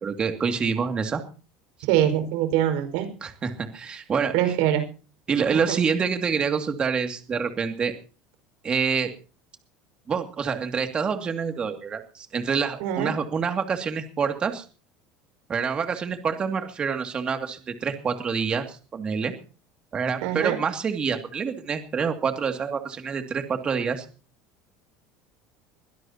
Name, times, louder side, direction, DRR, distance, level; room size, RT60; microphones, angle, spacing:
voice 1, 0.0-1.2 3.2-4.3 5.3-7.9 8.6-9.1 10.1-14.6 15.5-19.3 19.9-24.0, right 6 dB, 25° right, 6 dB, 2.4 m, -27 dB
voice 2, 1.9-3.1 4.3-4.8 5.7-5.8 12.8-13.1 20.2-20.6, right 11 dB, 75° right, 6 dB, 5.2 m, -23 dB
23.0 x 16.5 x 2.9 m, 0.37 s
cardioid pair, 140°, 4 cm